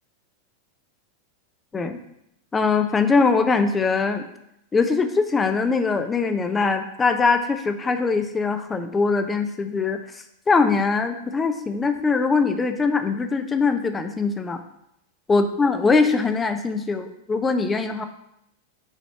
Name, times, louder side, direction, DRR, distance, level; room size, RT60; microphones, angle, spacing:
voice 1, 2.5-4.3 4.7-10.0 10.5-14.6 15.3-18.0, left 4 dB, 15° left, 8 dB, 0.6 m, -22 dB
5.8 x 4.3 x 5.4 m, 0.79 s
figure-of-eight pair, 90°, 0 cm